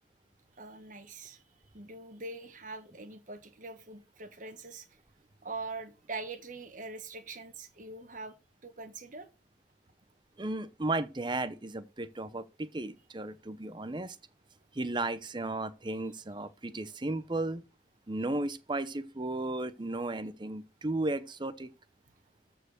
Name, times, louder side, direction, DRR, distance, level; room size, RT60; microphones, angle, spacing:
voice 1, 0.6-1.4 1.7-4.9 5.4-8.4 8.6-9.3, right 3 dB, 45° right, 1.4 m, -43 dB
voice 2, 10.4-14.2 14.7-17.6 18.1-21.7, right 2 dB, 25° right, 0.7 m, -34 dB
13.5 x 4.5 x 6.4 m
head